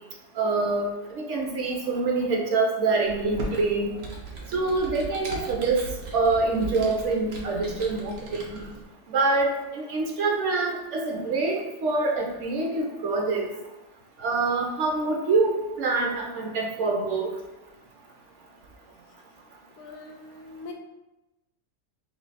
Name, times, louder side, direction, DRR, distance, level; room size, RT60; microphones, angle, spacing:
voice 1, 0.4-3.9 4.5-5.8 6.1-8.4 9.1-13.5 14.2-15.5 15.8-17.3, right 3 dB, 65° right, 0 dB, 0.8 m, -25 dB
Computer keyboard, 3.0-8.8, right 3 dB, 85° right, 1.3 m, -38 dB
voice 2, 19.8-20.7, left 3 dB, 75° left, 3 dB, 0.9 m, -42 dB
3.2 x 2.8 x 3.9 m, 1.0 s
omnidirectional pair, 1.5 m